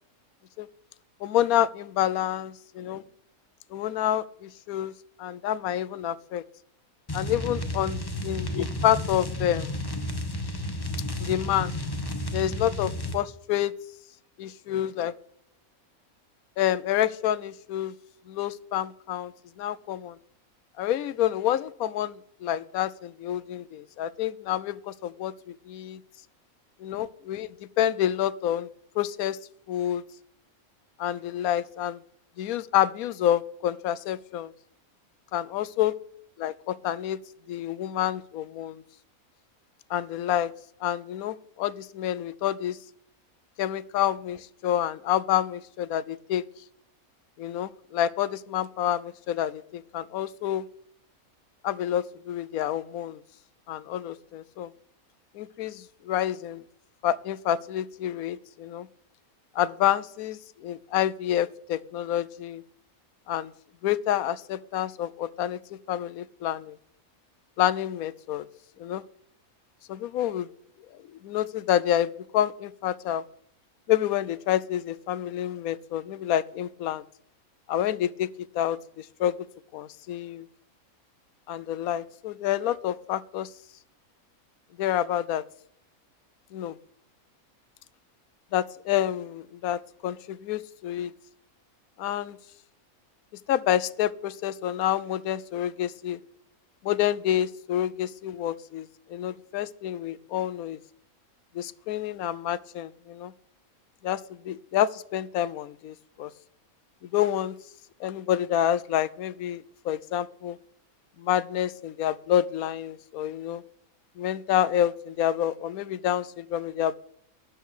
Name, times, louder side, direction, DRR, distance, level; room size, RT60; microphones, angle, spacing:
voice 1, 1.2-3.0 3.7-4.9 5.2-6.4 7.1-9.7 11.2-11.7 12.3-13.7 14.4-15.1 16.6-17.9 18.3-20.2 20.8-26.0 26.8-28.7 28.9-29.4 29.7-30.0 31.0-32.0 32.4-34.5 35.3-36.0 36.4-37.2 37.5-38.8 39.9-40.5 40.8-42.8 43.6-46.4 47.4-50.7 51.6-53.2 53.7-54.7 55.3-56.6 57.0-58.9 59.5-62.6 63.3-63.5 63.8-66.8 67.6-68.5 68.8-69.0 69.9-70.5 71.1-73.2 73.9-77.0 77.7-79.4 79.7-80.5 81.5-83.5 84.8-85.4 86.5-86.8 88.5-91.1 92.0-92.4 93.5-96.2 96.8-100.8 101.5-103.3 104.0-106.3 107.0-107.6 108.0-110.6 111.2-113.6 114.2-117.0, left 11 dB, 85° left, 17 dB, 1.1 m, -28 dB
sound 1, 7.1-13.2, left 1 dB, 20° left, 0.8 m, -32 dB
12.0 x 4.6 x 8.4 m, 0.70 s
omnidirectional pair, 1.5 m